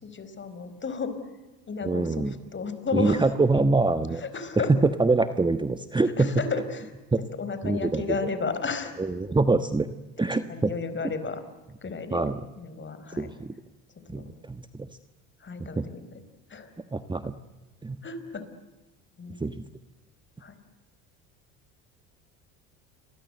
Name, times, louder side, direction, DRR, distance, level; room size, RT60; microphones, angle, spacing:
voice 1, 0.0-1.1 1.7-3.3 4.2-4.7 6.2-6.9 7.4-8.9 10.3-11.4 11.8-12.2 12.6-13.3 14.1-14.3 15.4-16.0 16.5-16.7 18.0-18.4 19.2-19.4 20.4-20.6, left 5 dB, 30° left, 11 dB, 5.1 m, -33 dB
voice 2, 1.8-2.3 2.9-4.2 4.7-6.3 7.1-7.2 7.6-8.3 9.0-9.9 10.2-10.7 12.1-12.4 13.2-13.5 14.1-14.9 15.6-15.9 16.9-17.3 17.8-18.0 19.4-19.5, right 3 dB, 10° right, 10 dB, 1.3 m, -25 dB
29.5 x 23.0 x 7.9 m, 1.1 s
hypercardioid pair, 75°, 37 cm